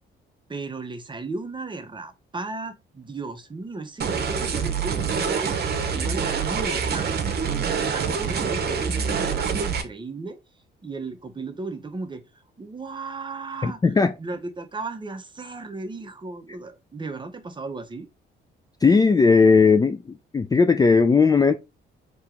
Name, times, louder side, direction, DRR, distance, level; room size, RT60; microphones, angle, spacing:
voice 1, 0.5-5.5 5.9-7.1 7.5-10.4 10.8-12.2 12.6-13.8 14.2-18.1, right 3 dB, 25° right, 0.9 m, -35 dB
sound 1, 4.0-9.8, right 6 dB, 55° right, 0.9 m, -26 dB
voice 2, 13.6-14.1 18.8-21.6, left 4 dB, 20° left, 0.4 m, -17 dB
4.4 x 3.0 x 3.5 m
cardioid pair, 90°, 20 cm